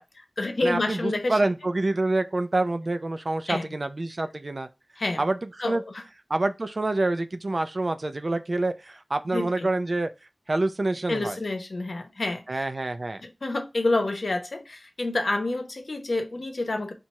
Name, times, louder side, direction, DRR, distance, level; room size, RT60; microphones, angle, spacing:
voice 1, 0.0-1.4 3.5-3.7 5.0-5.2 5.6-6.0 9.3-9.7 11.1-12.6 13.2-16.9, left 2 dB, 85° left, 0.8 m, -28 dB
voice 2, 0.6-4.7 5.2-5.4 5.6-5.8 6.3-10.1 10.5-11.4 12.5-13.2, right 2 dB, 65° right, 0.5 m, -27 dB
4.5 x 2.6 x 4.1 m
wide cardioid pair, 60°, 0 cm